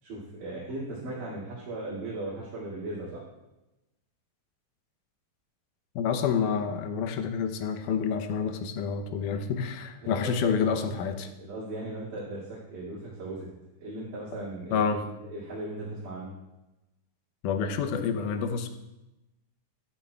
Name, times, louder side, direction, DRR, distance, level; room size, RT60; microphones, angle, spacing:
voice 1, 0.0-3.2 10.0-10.6 11.4-13.5 13.8-16.3, right 2 dB, 85° right, -8 dB, 3.8 m, -37 dB
voice 2, 6.0-11.3 14.7-15.0 17.4-18.7, left 6 dB, 85° left, 8 dB, 2.3 m, -28 dB
13.0 x 11.5 x 2.3 m, 0.98 s
omnidirectional pair, 3.6 m